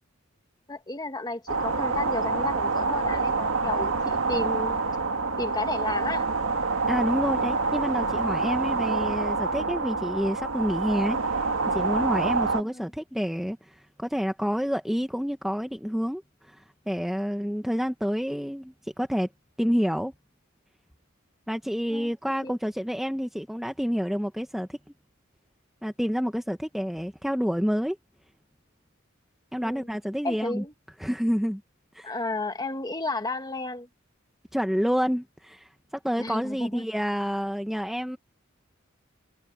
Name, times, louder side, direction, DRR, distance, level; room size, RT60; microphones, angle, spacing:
voice 1, 0.7-4.8 5.4-6.3 12.6-12.9 21.9-22.1 22.4-22.5 29.6-29.9 30.2-30.7 32.0-33.9 36.2-36.8, left 2 dB, 20° left, 1.7 m, -33 dB
sound 1, 1.5-12.6, right 4 dB, 90° right, 1.9 m, -27 dB
voice 2, 6.9-11.4 11.7-19.3 19.6-20.1 21.5-24.8 25.8-28.0 29.5-30.6 31.0-31.6 31.9-32.1 34.5-38.2, equal, ahead, 1.0 m, -28 dB
head